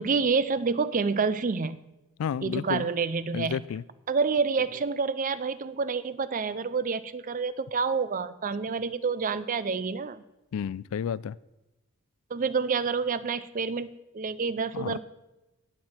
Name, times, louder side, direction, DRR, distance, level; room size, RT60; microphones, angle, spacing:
voice 1, 0.0-1.8 2.4-3.6 4.1-10.2 12.3-15.0, right 5 dB, 35° right, 15 dB, 0.5 m, -28 dB
voice 2, 2.2-2.9 3.3-3.8 10.5-11.4 14.7-15.0, left 7 dB, 65° left, 21 dB, 0.3 m, -31 dB
19.0 x 7.7 x 4.4 m, 1.0 s
head